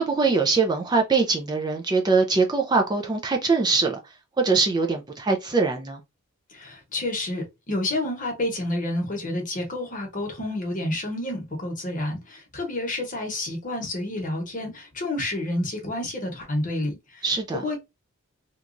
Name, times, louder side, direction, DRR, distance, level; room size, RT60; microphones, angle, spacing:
voice 1, 0.0-4.0 4.4-6.0 17.2-17.6, right 4 dB, 20° right, 0.3 m, -22 dB
voice 2, 6.5-17.2 17.6-17.8, left 1 dB, 35° left, 0.9 m, -29 dB
2.9 x 2.3 x 2.5 m
head